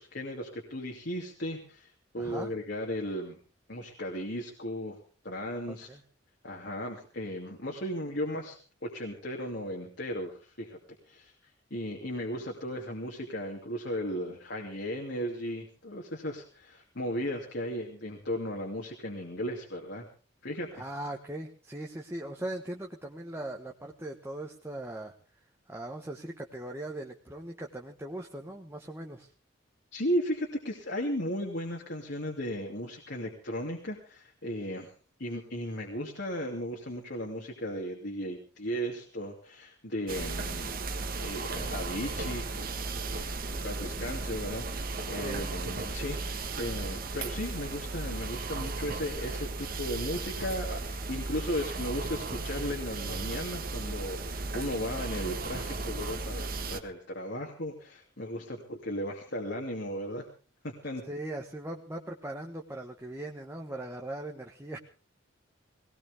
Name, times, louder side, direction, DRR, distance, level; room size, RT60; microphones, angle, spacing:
voice 1, 0.0-3.4 3.7-5.0 5.2-5.9 6.4-8.6 8.8-10.8 11.1-11.3 11.7-20.1 20.4-20.8 29.9-34.9 35.2-40.8 41.2-42.7 43.1-60.3 60.6-61.0, equal, 60° left, 0 dB, 2.7 m, -36 dB
voice 2, 2.2-2.5 5.9-6.0 20.7-25.1 25.7-29.3 45.2-45.5 61.1-64.8, right 1 dB, 15° right, 2 dB, 1.4 m, -39 dB
sound 1, 40.1-56.8, right 3 dB, 50° right, 1.5 m, -35 dB
20.5 x 18.5 x 3.6 m, 0.37 s
head